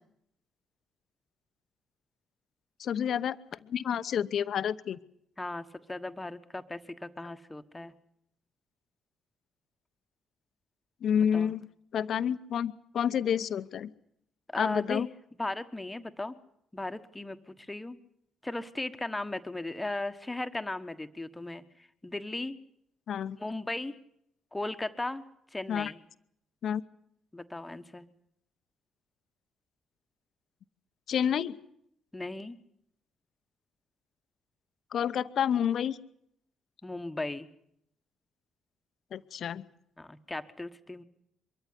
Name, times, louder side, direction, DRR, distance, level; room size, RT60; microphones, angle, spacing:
voice 1, 2.8-3.4 3.7-5.0 11.0-11.6 11.9-13.9 14.6-15.1 23.1-23.4 25.7-25.9 26.6-26.8 31.1-31.5 34.9-36.0 39.1-39.6, left 8 dB, 65° left, 13 dB, 0.9 m, -29 dB
voice 2, 5.4-7.9 11.3-11.5 14.5-15.1 15.4-16.4 16.7-18.0 18.4-21.6 22.0-22.6 23.3-24.0 24.5-25.2 25.5-26.0 27.3-28.1 32.1-32.6 36.8-37.5 40.0-41.0, left 2 dB, 15° left, 8 dB, 1.4 m, -36 dB
23.5 x 14.0 x 9.9 m, 0.76 s
hypercardioid pair, 55°, 0 cm